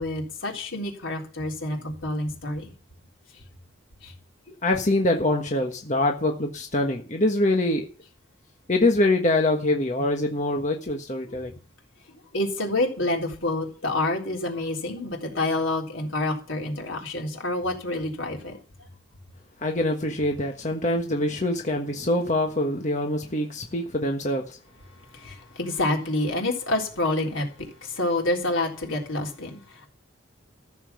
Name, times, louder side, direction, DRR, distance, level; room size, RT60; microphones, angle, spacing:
voice 1, 0.0-2.7 4.0-4.1 11.3-11.4 12.3-18.6 25.1-27.5 27.8-29.9, left 2 dB, 85° left, 3.8 m, -28 dB
voice 2, 4.5-7.9 8.7-11.5 19.6-24.6, left 1 dB, 40° left, 1.4 m, -24 dB
14.0 x 7.3 x 7.0 m
head